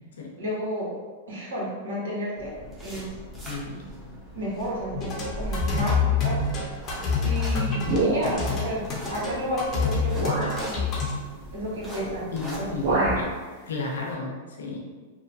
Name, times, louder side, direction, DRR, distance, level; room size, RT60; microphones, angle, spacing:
voice 1, 0.4-0.9 1.3-2.5 2.8-3.1 4.3-6.4 7.2-8.8 9.1-10.9 11.5-12.3 12.6-13.2, equal, 85° right, -6 dB, 1.1 m, -32 dB
sound 1, 2.4-13.2, equal, 15° right, 0.8 m, -40 dB
voice 2, 3.5-3.8 12.3-12.9 13.2-13.3 13.7-14.3 14.6-14.8, left 3 dB, 90° left, -1 dB, 0.6 m, -32 dB
sound 2, 4.9-11.1, left 5 dB, 30° left, 0.7 m, -26 dB
sound 3, 7.8-8.6 9.5-9.6 10.1-10.6 12.0-12.3 12.5-13.3, right 2 dB, 50° right, 0.8 m, -26 dB
2.9 x 2.2 x 2.6 m, 1.4 s
hypercardioid pair, 125°, 0 cm